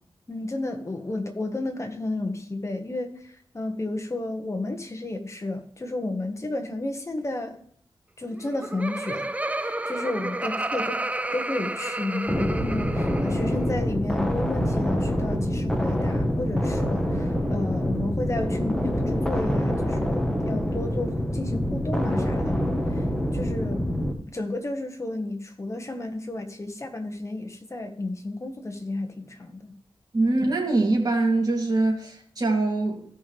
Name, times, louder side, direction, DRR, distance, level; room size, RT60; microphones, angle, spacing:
voice 1, 0.3-7.6 8.2-23.0 23.3-23.9 24.3-29.7 30.2-30.3, left 2 dB, 30° left, 5 dB, 1.6 m, -32 dB
Laughter, 8.3-13.5, right 2 dB, 15° right, 0.4 m, -31 dB
sound 1, 12.3-24.1, equal, 5° left, 1.5 m, -26 dB
voice 2, 30.1-33.1, right 2 dB, 45° right, -1 dB, 2.9 m, -23 dB
15.5 x 5.4 x 3.4 m, 0.62 s
wide cardioid pair, 70°, 10 cm